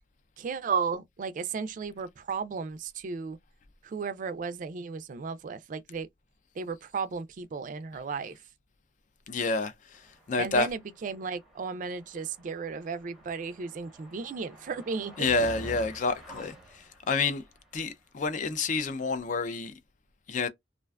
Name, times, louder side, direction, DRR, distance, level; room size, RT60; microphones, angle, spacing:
voice 1, 0.4-3.4 3.8-6.1 6.6-8.4 10.4-15.3, right 5 dB, 50° right, 0.3 m, -34 dB
voice 2, 9.3-9.7 10.3-10.7 15.2-16.5 17.1-17.4 17.7-19.7 20.3-20.5, left 3 dB, 45° left, 0.4 m, -28 dB
sound 1, 9.9-17.6, right 1 dB, ahead, 0.7 m, -48 dB
2.4 x 2.2 x 2.3 m
head